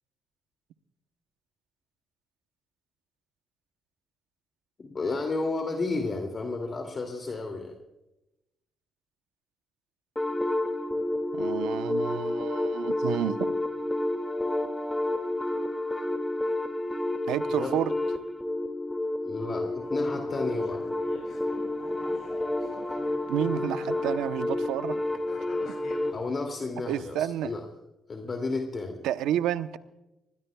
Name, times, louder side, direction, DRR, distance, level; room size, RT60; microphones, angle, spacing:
voice 1, 4.8-7.8 17.5-17.8 19.2-20.8 26.1-27.6 28.1-29.0, left 3 dB, 40° left, 3 dB, 2.5 m, -32 dB
sound 1, 10.2-26.2, left 1 dB, 10° left, 2.2 m, -30 dB
voice 2, 11.3-13.5 17.3-17.9 23.3-25.0 26.9-27.5 29.0-29.8, right 11 dB, 85° right, 11 dB, 0.8 m, -30 dB
sound 2, 19.6-26.4, left 3 dB, 65° left, 7.6 m, -48 dB
26.0 x 20.0 x 2.3 m, 0.94 s
cardioid pair, 80°, 0 cm